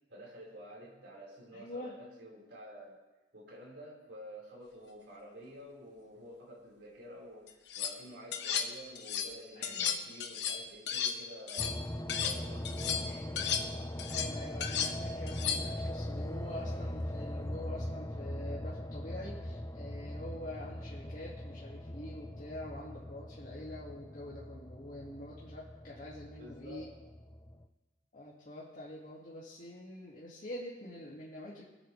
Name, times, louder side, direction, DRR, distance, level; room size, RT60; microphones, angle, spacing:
voice 1, 0.1-3.0 3.3-11.8 12.2-13.4 26.4-26.9, equal, 75° right, -4 dB, 4.7 m, -50 dB
voice 2, 1.5-1.9 9.6-10.0 14.1-26.9 28.1-31.6, left 1 dB, 45° left, -6 dB, 2.2 m, -46 dB
sound 1, 7.5-8.0 8.3-9.3 9.6-12.4 12.7-15.8, left 7 dB, 70° left, 1.1 m, -35 dB
sound 2, 11.6-27.6, left 1 dB, 15° left, 0.6 m, -40 dB
24.0 x 8.9 x 3.3 m, 1.1 s
head